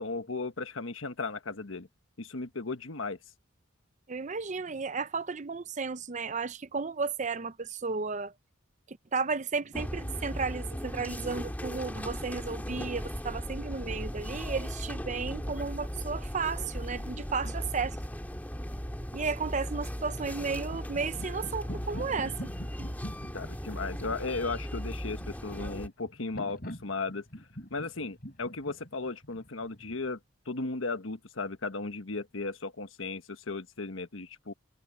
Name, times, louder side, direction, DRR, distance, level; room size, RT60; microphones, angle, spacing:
voice 1, 0.0-1.9 2.2-3.2 23.3-27.2 27.7-30.2 30.5-34.5, left 3 dB, 80° left, 1.3 m, -36 dB
voice 2, 4.1-8.3 8.9-18.0 19.1-22.5, right 4 dB, 35° right, 0.6 m, -33 dB
sound 1, 9.7-25.9, equal, 10° left, 2.2 m, -37 dB
sound 2, 20.7-30.1, equal, 45° left, 6.9 m, -45 dB
head